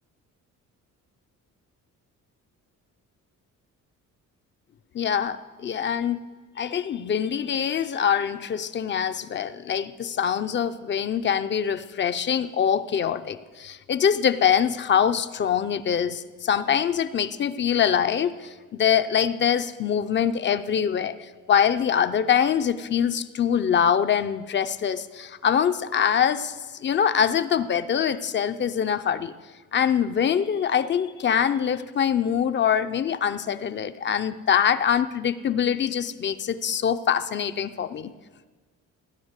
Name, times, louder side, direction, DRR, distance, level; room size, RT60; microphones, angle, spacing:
voice 1, 4.9-6.2 6.6-29.3 29.7-38.1, left 8 dB, 35° left, 11 dB, 0.5 m, -24 dB
18.0 x 10.0 x 8.1 m, 1.4 s
cardioid pair, 175°, 31 cm